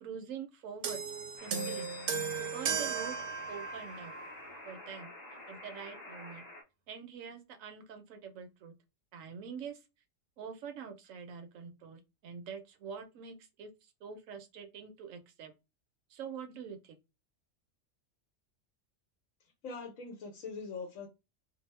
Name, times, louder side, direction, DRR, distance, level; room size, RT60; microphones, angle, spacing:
voice 1, 0.0-1.0 1.4-1.9 2.5-3.2 3.5-4.2 4.6-5.1 5.5-6.5 6.9-8.7 9.1-9.8 10.4-15.5 16.1-17.0, right 7 dB, 90° right, 1.0 m, -45 dB
sound 1, 0.8-4.4 5.3-5.5, right 6 dB, 70° right, 0.8 m, -36 dB
sound 2, 1.4-6.6, left 1 dB, 40° left, 0.7 m, -49 dB
voice 2, 19.6-21.1, left 4 dB, 85° left, 1.1 m, -42 dB
2.8 x 2.0 x 3.0 m
omnidirectional pair, 1.3 m